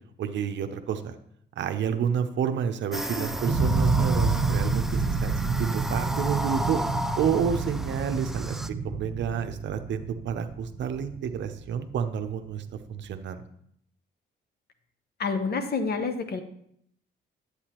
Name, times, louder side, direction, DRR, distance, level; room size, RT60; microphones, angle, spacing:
voice 1, 0.2-1.1 1.6-6.8 7.2-8.6 8.8-12.6 12.9-13.4, right 8 dB, 65° right, 8 dB, 0.7 m, -29 dB
sound 1, 2.9-8.7, equal, ahead, 0.3 m, -33 dB
sound 2, 3.4-12.3, right 3 dB, 45° right, 1.3 m, -29 dB
voice 2, 15.2-16.4, left 4 dB, 55° left, 7 dB, 1.0 m, -28 dB
8.2 x 8.1 x 3.0 m, 0.70 s
cardioid pair, 90°, 20 cm